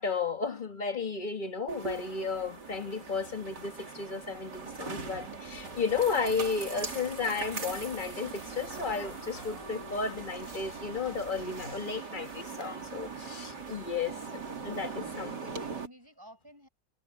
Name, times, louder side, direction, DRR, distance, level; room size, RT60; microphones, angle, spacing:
voice 1, 0.0-15.3, left 5 dB, 30° left, 1.4 m, -33 dB
sound 1, 1.7-15.9, right 5 dB, 70° right, 3.6 m, -41 dB
sound 2, 5.4-11.8, left 2 dB, 45° left, 4.2 m, -50 dB
voice 2, 13.9-14.2 15.0-16.7, equal, 10° right, 6.7 m, -54 dB
omnidirectional pair, 1.9 m